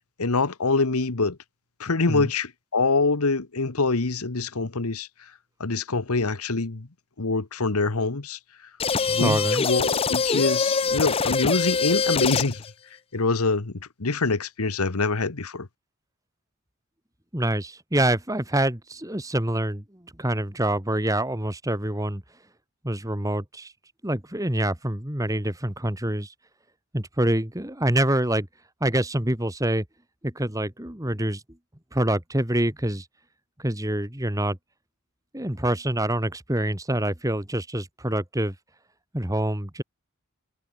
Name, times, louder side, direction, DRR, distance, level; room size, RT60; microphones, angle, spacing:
voice 1, 0.0-1.4 1.8-5.1 5.6-6.9 7.2-8.4 9.1-12.6 13.1-15.7, left 3 dB, 80° left, 1.3 m, -25 dB
sound 1, 8.8-12.7, left 5 dB, 25° left, 0.6 m, -24 dB
voice 2, 9.2-9.6 17.3-19.8 20.2-22.2 22.8-23.7 24.0-26.3 26.9-28.5 28.8-29.8 30.2-31.4 31.9-33.1 33.6-34.6 35.3-38.5 39.1-39.8, right 1 dB, 15° right, 2.0 m, -26 dB
head